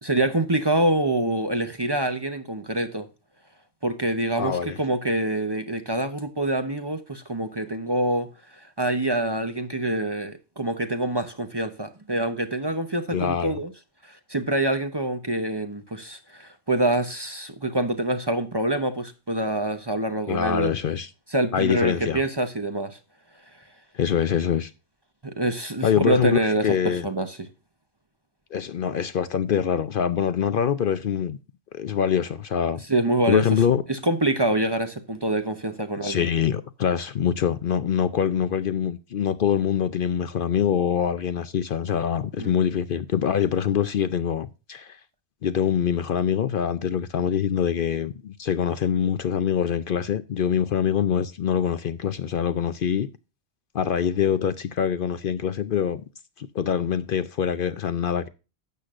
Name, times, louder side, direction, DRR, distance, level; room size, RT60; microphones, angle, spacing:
voice 1, 0.0-3.1 3.8-8.3 8.5-13.7 14.0-20.7 21.3-23.0 25.2-27.4 32.9-33.5 33.9-36.2 42.4-42.5, right 1 dB, 25° right, 0.8 m, -26 dB
voice 2, 4.4-4.8 13.1-13.6 20.3-21.1 21.5-22.2 23.9-24.7 25.8-27.1 28.5-31.4 31.7-32.8 33.3-33.8 36.0-45.0 45.4-53.1 53.7-56.0 56.4-58.3, left 8 dB, 60° left, 0.7 m, -24 dB
12.5 x 8.2 x 2.4 m
omnidirectional pair, 1.1 m